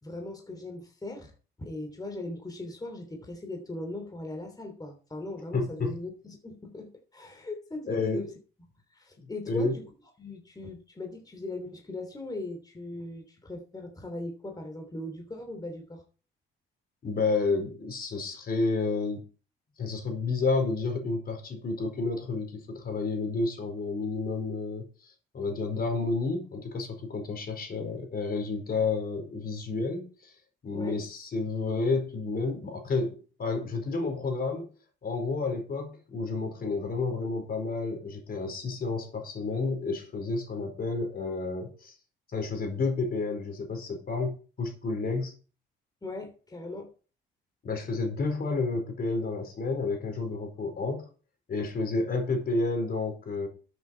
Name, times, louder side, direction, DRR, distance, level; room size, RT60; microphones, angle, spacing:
voice 1, 0.0-1.3 1.6-8.3 8.9-9.8 10.2-16.0 30.7-31.0 46.0-46.9, left 2 dB, 20° left, 4 dB, 3.2 m, -39 dB
voice 2, 5.5-5.9 7.9-8.3 9.2-9.8 17.0-19.2 19.8-30.3 30.6-34.7 35.0-41.9 42.3-45.3 47.6-51.1 51.5-53.5, left 3 dB, 50° left, 5 dB, 4.7 m, -30 dB
13.0 x 8.2 x 4.7 m, 0.37 s
cardioid pair, 90°, 20 cm